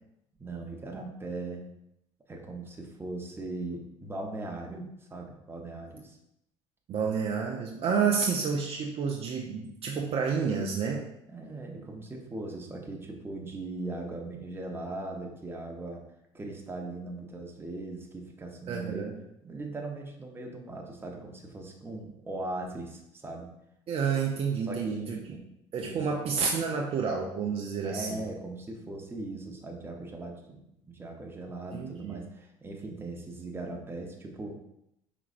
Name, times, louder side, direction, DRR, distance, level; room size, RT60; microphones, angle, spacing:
voice 1, 0.4-1.7 2.3-6.2 11.3-16.0 16.3-19.1 19.4-23.5 24.7-25.5 25.8-26.1 27.8-30.6 30.9-34.5, right 2 dB, 15° right, 1 dB, 0.8 m, -39 dB
voice 2, 6.9-11.1 18.7-19.1 23.9-25.2 25.7-28.2 31.7-32.2, right 6 dB, 45° right, 0 dB, 0.5 m, -29 dB
5.0 x 3.0 x 2.5 m, 0.81 s
supercardioid pair, 80°, 14 cm